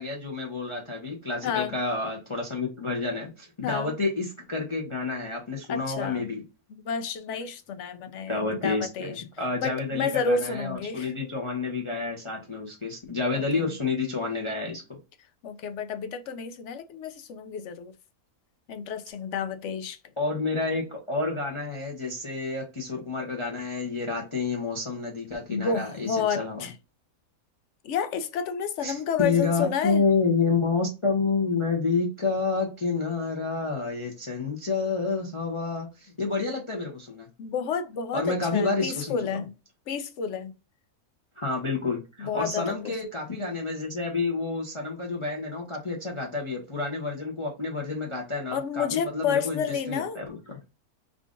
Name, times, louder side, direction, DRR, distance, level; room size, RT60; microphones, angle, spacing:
voice 1, 0.0-6.4 8.3-14.8 20.2-26.7 28.8-37.3 38.1-39.4 41.4-50.6, left 4 dB, 30° left, 0.6 m, -29 dB
voice 2, 1.4-1.8 3.6-3.9 5.7-6.3 6.7-9.1 9.6-11.1 13.3-13.4 15.4-17.9 18.7-20.0 25.5-26.7 27.8-30.0 37.4-39.5 39.9-40.5 42.2-42.8 48.5-50.2, left 6 dB, 65° left, 0.8 m, -30 dB
3.7 x 2.4 x 3.6 m
omnidirectional pair, 1.6 m